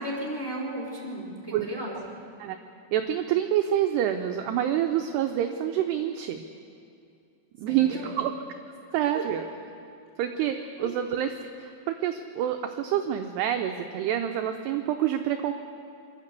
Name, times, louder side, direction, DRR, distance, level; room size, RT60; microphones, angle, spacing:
voice 1, 0.0-2.2 7.7-8.1 9.1-9.2 10.8-10.9, right 1 dB, 5° left, -3 dB, 2.8 m, -35 dB
voice 2, 2.9-6.5 7.6-8.3 8.9-9.4 10.2-11.3 11.6-15.5, right 10 dB, 80° right, 6 dB, 2.5 m, -27 dB
26.5 x 12.0 x 8.1 m, 2.4 s
omnidirectional pair, 5.5 m